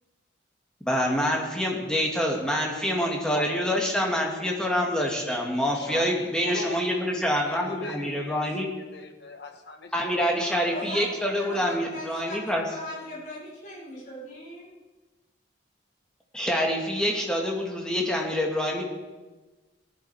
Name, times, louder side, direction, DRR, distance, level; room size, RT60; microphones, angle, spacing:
voice 1, 0.8-8.7 9.9-12.6 16.3-18.8, equal, 5° left, 2.0 m, -26 dB
voice 2, 5.7-8.4 8.7-12.0, left 2 dB, 65° left, 1.4 m, -41 dB
voice 3, 10.7-12.4 12.6-14.7, equal, 40° left, 4.5 m, -40 dB
18.5 x 11.0 x 4.8 m
head